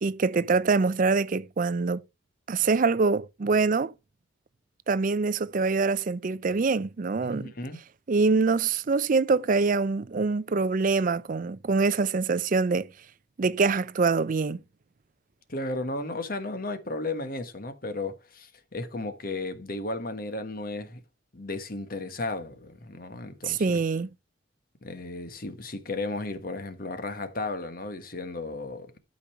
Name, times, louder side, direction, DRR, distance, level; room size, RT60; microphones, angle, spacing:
voice 1, 0.0-2.0 2.5-3.9 4.9-7.5 8.1-12.9 13.4-14.6 23.5-24.1, right 4 dB, 45° right, 0.4 m, -24 dB
voice 2, 7.2-7.8 15.5-21.0 21.3-23.8 24.8-28.9, left 2 dB, 50° left, 1.4 m, -34 dB
12.0 x 5.3 x 4.3 m
head